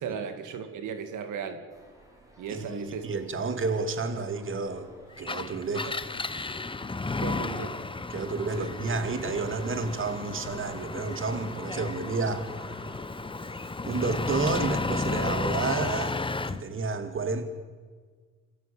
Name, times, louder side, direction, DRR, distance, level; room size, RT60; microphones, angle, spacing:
voice 1, 0.0-1.6 2.4-3.1 7.2-7.8 8.2-8.3 8.6-8.7, right 7 dB, 80° right, 8 dB, 2.4 m, -36 dB
sound 1, 1.7-14.2, right 1 dB, 10° right, 6.0 m, -54 dB
voice 2, 2.5-4.9 5.2-6.0 8.1-12.5 13.8-16.2 16.5-17.4, right 4 dB, 40° right, 9 dB, 2.4 m, -30 dB
Engine, 5.2-16.6, left 3 dB, 15° left, 1.0 m, -33 dB
26.5 x 15.0 x 9.0 m, 1.5 s
cardioid pair, 90°, 30 cm